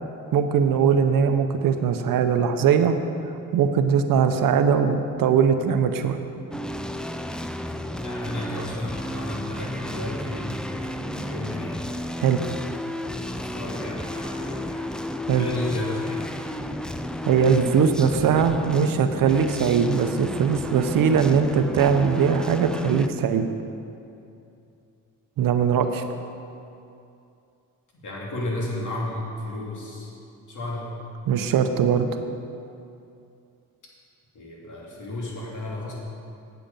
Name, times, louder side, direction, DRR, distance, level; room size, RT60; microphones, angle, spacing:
voice 1, 0.3-2.9 3.5-6.2 12.2-12.4 15.3-15.5 17.2-23.5 25.4-26.0 31.3-32.1, right 7 dB, 90° right, 8 dB, 0.7 m, -20 dB
sound 1, 6.5-23.1, left 1 dB, 5° left, 0.3 m, -32 dB
voice 2, 8.0-11.9 13.3-14.9 15.3-16.4 28.0-30.1 30.5-31.0 34.3-35.9, left 1 dB, 65° left, -4 dB, 2.5 m, -33 dB
8.8 x 8.1 x 5.3 m, 2.6 s
cardioid pair, 90°, 33 cm